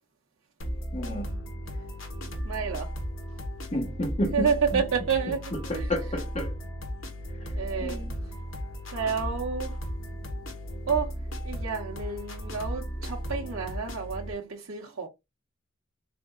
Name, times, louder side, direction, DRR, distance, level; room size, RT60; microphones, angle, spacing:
sound 1, 0.6-14.3, equal, 70° left, 1.3 m, -35 dB
voice 1, 0.9-1.4 3.7-4.8 5.7-6.6 7.8-8.1, left 1 dB, 30° left, 1.1 m, -31 dB
voice 2, 2.4-2.9 4.3-5.9 7.6-8.3 8.9-9.8 10.9-11.2 11.4-15.1, right 6 dB, 80° right, 0.9 m, -30 dB
3.6 x 3.6 x 2.3 m
head